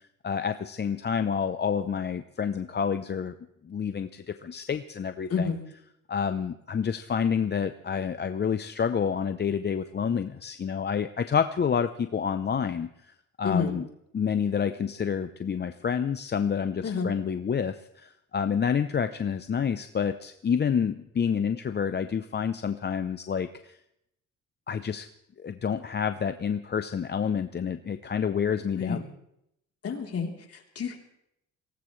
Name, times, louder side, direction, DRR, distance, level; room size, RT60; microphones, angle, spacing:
voice 1, 0.0-3.3 3.6-5.5 6.1-12.9 13.4-13.8 14.1-23.8 24.7-25.1 25.4-29.0, left 7 dB, 35° left, 10 dB, 0.7 m, -28 dB
voice 2, 13.4-13.8 16.8-17.1 28.8-29.0 29.8-31.0, left 6 dB, 50° left, 1 dB, 3.6 m, -29 dB
23.5 x 18.0 x 3.2 m, 0.79 s
cardioid pair, 90°, 30 cm